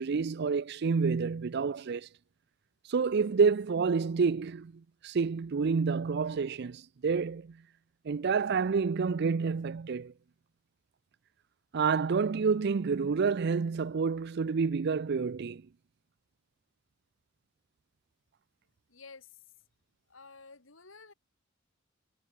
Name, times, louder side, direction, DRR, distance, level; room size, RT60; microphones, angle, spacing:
voice 1, 0.0-2.1 2.9-7.6 8.0-10.1 11.7-15.6, right 5 dB, 60° right, 0.5 m, -29 dB
voice 2, 18.9-19.3 20.1-21.1, left 4 dB, 85° left, 2.8 m, -51 dB
head